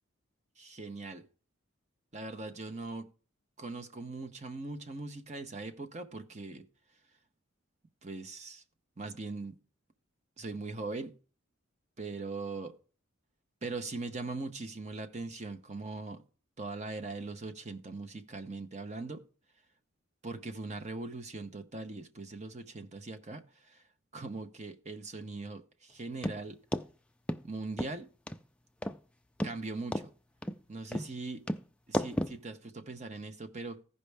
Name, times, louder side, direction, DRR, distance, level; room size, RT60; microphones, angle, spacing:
voice 1, 0.6-1.3 2.1-3.1 3.6-6.7 8.0-8.6 9.0-9.6 10.4-11.1 12.0-12.7 13.6-16.2 16.6-19.2 20.2-23.8 24.1-26.6 27.4-28.1 29.4-30.1 30.7-31.4 31.9-33.8, right 3 dB, 35° right, 0.8 m, -40 dB
sound 1, 26.2-26.4 26.7-26.9 27.3-27.4 27.8-27.9 28.3-28.4 28.8-29.0 29.4-29.5 29.9-30.1 30.4-30.6 30.9-31.1 31.5-31.6 31.9-32.4, equal, 5° left, 0.3 m, -32 dB
15.0 x 5.4 x 3.4 m
head